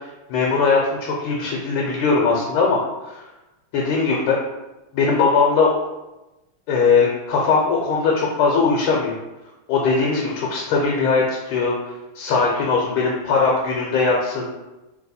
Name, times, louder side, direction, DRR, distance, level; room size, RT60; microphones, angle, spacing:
voice 1, 0.3-3.3 3.7-4.4 4.9-5.7 6.7-9.1 9.7-11.7 12.2-14.5, left 4 dB, 80° left, -2 dB, 1.5 m, -20 dB
3.3 x 2.9 x 4.0 m, 1.0 s
omnidirectional pair, 2.3 m